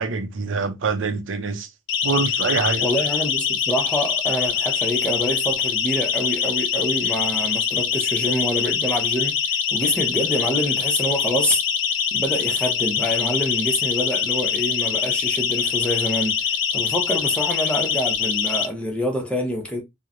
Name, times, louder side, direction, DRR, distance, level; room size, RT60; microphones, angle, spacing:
voice 1, 0.0-1.7 2.0-2.9, right 4 dB, 85° right, 0.5 m, -25 dB
Siren, 1.9-18.7, left 7 dB, 70° left, 0.4 m, -24 dB
voice 2, 2.8-9.4 9.7-11.6 12.1-16.4 16.7-19.8, equal, 5° left, 0.7 m, -26 dB
3.0 x 2.0 x 2.5 m
head